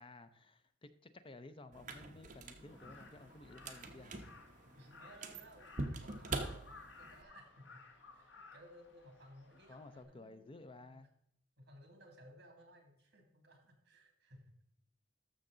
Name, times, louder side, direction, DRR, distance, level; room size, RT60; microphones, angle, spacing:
voice 1, 0.0-4.3 9.7-11.1, left 2 dB, 30° left, 11 dB, 0.6 m, -54 dB
sound 1, 1.7-7.2, right 2 dB, 45° right, 1.0 m, -45 dB
Crow, 2.6-10.0, left 4 dB, 75° left, 1.4 m, -58 dB
voice 2, 4.7-5.6 6.0-7.8 8.1-11.1 11.6-14.5, equal, 60° right, 3 dB, 2.5 m, -59 dB
13.0 x 6.4 x 3.8 m, 0.71 s
head